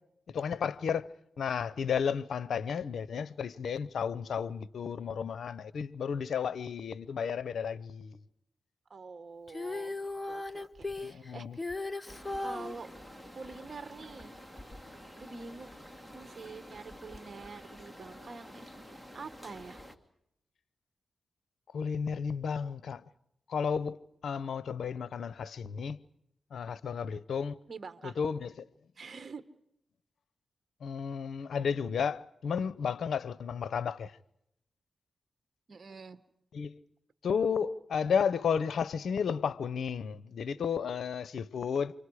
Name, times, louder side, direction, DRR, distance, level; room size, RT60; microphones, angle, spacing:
voice 1, 0.3-1.0 1.4-8.2 11.0-11.6 21.7-23.0 23.5-24.0 24.2-26.0 26.5-27.6 28.0-28.5 30.8-34.1 36.5-36.8 37.2-41.9, left 6 dB, 75° left, 0.8 m, -33 dB
voice 2, 8.9-12.1 12.4-12.9 13.3-14.4 15.1-15.7 16.1-18.7 19.1-19.8 27.7-28.2 29.0-29.4 35.7-36.2, right 4 dB, 55° right, 1.5 m, -46 dB
Female singing, 9.5-12.8 14.7-14.8, left 2 dB, 25° left, 1.0 m, -37 dB
sound 1, 12.1-20.0, equal, ahead, 2.4 m, -49 dB
29.5 x 25.5 x 4.9 m
cardioid pair, 50°, 0 cm